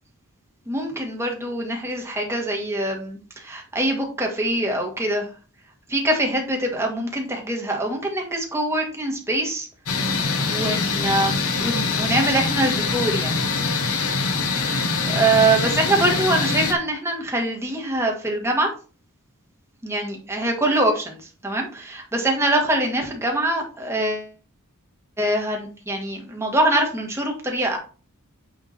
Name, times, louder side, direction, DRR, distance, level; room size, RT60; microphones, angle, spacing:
voice 1, 0.7-5.3 5.9-9.7 10.5-13.4 14.9-18.7 19.8-24.3 25.2-27.8, right 1 dB, 10° right, 1 dB, 1.8 m, -24 dB
sound 1, 9.9-16.7, left 4 dB, 70° left, 1.2 m, -24 dB
9.0 x 3.7 x 4.4 m, 0.37 s
head